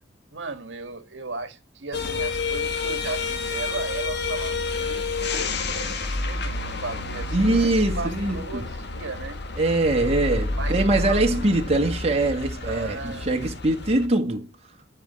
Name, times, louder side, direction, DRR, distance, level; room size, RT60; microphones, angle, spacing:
voice 1, 0.3-9.4 10.6-11.5 12.6-13.4, right 3 dB, 75° right, 1.7 m, -36 dB
sound 1, 1.9-14.1, left 3 dB, 60° left, 1.7 m, -29 dB
voice 2, 7.3-8.6 9.6-14.5, right 2 dB, 35° right, 2.1 m, -23 dB
11.5 x 5.7 x 7.9 m
head